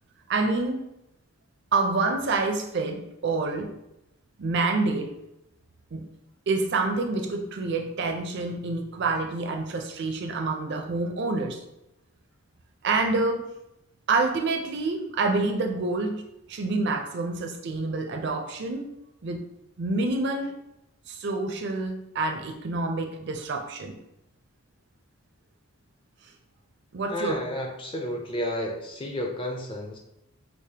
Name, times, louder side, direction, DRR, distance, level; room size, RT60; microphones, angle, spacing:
voice 1, 0.3-0.9 1.7-3.8 4.4-5.1 5.9-6.0 6.5-11.6 12.8-13.5 14.1-16.2 16.5-18.9 19.2-19.4 19.8-20.5 21.1-23.9 26.9-27.4, right 3 dB, 50° right, 4 dB, 0.4 m, -27 dB
voice 2, 27.1-30.0, left 1 dB, 25° left, 1 dB, 0.4 m, -32 dB
4.8 x 2.1 x 2.8 m, 0.87 s
head